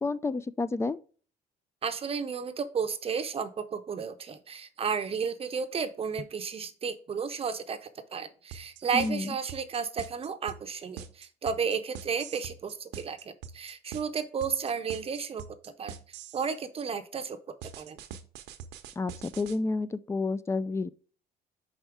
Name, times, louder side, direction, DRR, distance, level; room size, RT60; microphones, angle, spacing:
voice 1, 0.0-1.0 8.9-9.3 19.0-20.9, left 3 dB, 15° left, 0.3 m, -30 dB
voice 2, 1.8-16.0 16.3-18.0, right 6 dB, 35° right, 0.6 m, -33 dB
sound 1, 8.5-16.5 17.6-19.6, right 8 dB, 85° right, 0.8 m, -43 dB
5.3 x 4.9 x 4.7 m
cardioid pair, 110°, 17 cm